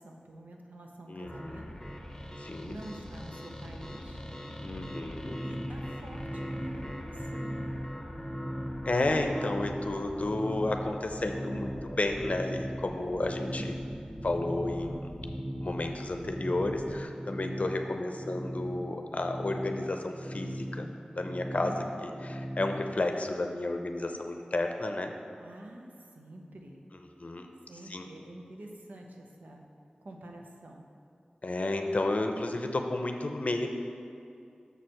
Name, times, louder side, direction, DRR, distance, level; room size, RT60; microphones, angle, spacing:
voice 1, 0.0-1.7 2.6-4.3 5.4-7.8 13.4-13.7 21.6-21.9 25.4-26.8 27.7-29.6 30.0-30.8, right 1 dB, 85° right, 1 dB, 0.8 m, -47 dB
voice 2, 1.1-1.7 2.4-2.8 4.6-5.4 8.9-13.7 14.2-15.1 15.6-25.1 27.2-27.5 27.9-28.1 31.4-33.7, left 2 dB, 60° left, 5 dB, 0.6 m, -32 dB
sound 1, 1.2-17.0, equal, 20° left, 0.9 m, -42 dB
sound 2, 4.9-23.1, equal, 5° right, 0.4 m, -39 dB
6.6 x 4.4 x 6.3 m, 2.5 s
cardioid pair, 40°, 3 cm